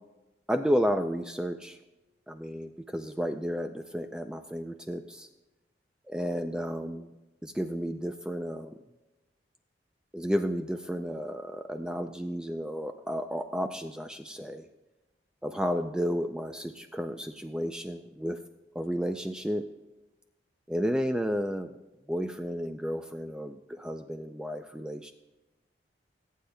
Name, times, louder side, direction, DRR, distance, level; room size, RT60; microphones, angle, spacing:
voice 1, 0.5-1.8 2.3-5.3 6.1-7.1 7.4-8.8 10.1-14.7 15.4-18.4 18.8-19.7 20.7-21.7 22.1-25.1, equal, 5° right, 7 dB, 0.3 m, -32 dB
22.5 x 8.4 x 2.2 m, 1.1 s
head